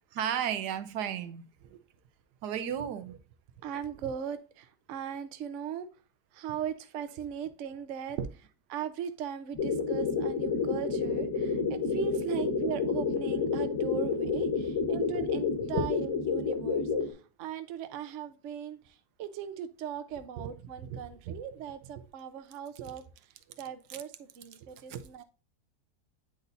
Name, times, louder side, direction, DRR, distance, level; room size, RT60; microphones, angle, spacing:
voice 1, 0.1-1.5 1.7-1.8 2.4-3.2 8.2-8.3 15.7-15.8 20.4-20.5 20.8-21.0 21.3-21.4 22.0-22.1 22.8-22.9 24.9-25.0, right 9 dB, 85° right, 1.2 m, -34 dB
voice 2, 3.6-5.9 6.3-8.2 8.7-23.0 23.6-25.2, right 8 dB, 60° right, 0.9 m, -38 dB
sound 1, 9.5-17.1, left 4 dB, 50° left, 1.6 m, -30 dB
9.1 x 4.1 x 2.5 m
omnidirectional pair, 1.7 m